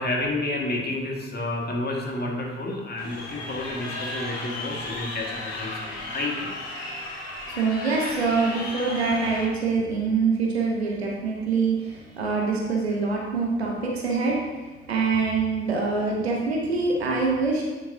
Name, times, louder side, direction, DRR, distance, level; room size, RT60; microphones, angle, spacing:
voice 1, 0.0-6.5, left 2 dB, 30° left, -1 dB, 1.9 m, -30 dB
Crowd, 3.0-9.4, left 2 dB, 60° left, 1.8 m, -35 dB
voice 2, 7.5-14.4 14.9-17.6, right 4 dB, 90° right, -1 dB, 1.0 m, -25 dB
9.2 x 6.2 x 2.8 m, 1.2 s
figure-of-eight pair, 45°, 31 cm